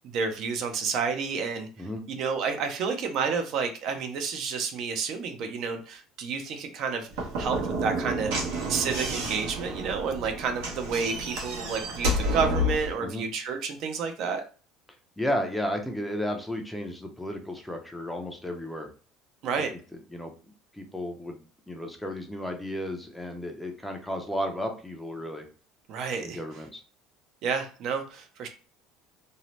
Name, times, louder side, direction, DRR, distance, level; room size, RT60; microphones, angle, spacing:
voice 1, 0.0-7.1 7.4-8.4 8.7-14.4 19.4-19.7 25.9-26.4 27.4-28.5, right 5 dB, 55° right, 5 dB, 0.5 m, -30 dB
Slam / Knock, 7.1-12.9, equal, 80° right, 0.9 m, -30 dB
voice 2, 15.2-18.9 19.6-19.7 20.1-20.3 20.7-25.5 26.2-26.8, equal, 5° left, 3 dB, 0.5 m, -33 dB
2.7 x 2.0 x 3.1 m, 0.38 s
cardioid pair, 135°, 0 cm